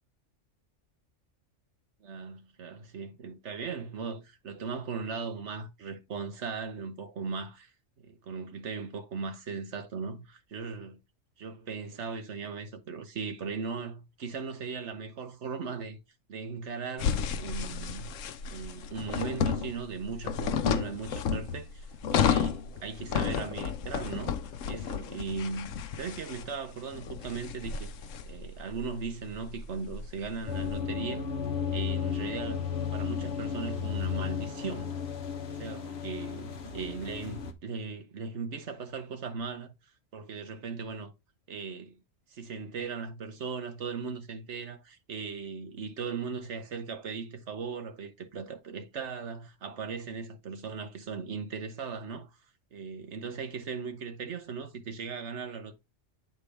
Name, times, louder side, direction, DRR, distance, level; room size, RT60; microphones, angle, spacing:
voice 1, 2.0-7.7 8.0-11.0 11.4-16.0 16.3-18.1 18.5-24.3 24.7-27.9 28.3-31.3 31.7-32.6 32.9-34.9 35.5-39.7 40.1-41.1 41.5-42.0 42.3-52.3 52.7-55.7, right 5 dB, 65° right, 1.4 m, -38 dB
sound 1, 17.0-30.7, left 7 dB, 80° left, 1.0 m, -32 dB
sound 2, 30.5-37.5, left 7 dB, 55° left, 1.1 m, -34 dB
8.5 x 4.4 x 3.2 m
omnidirectional pair, 1.3 m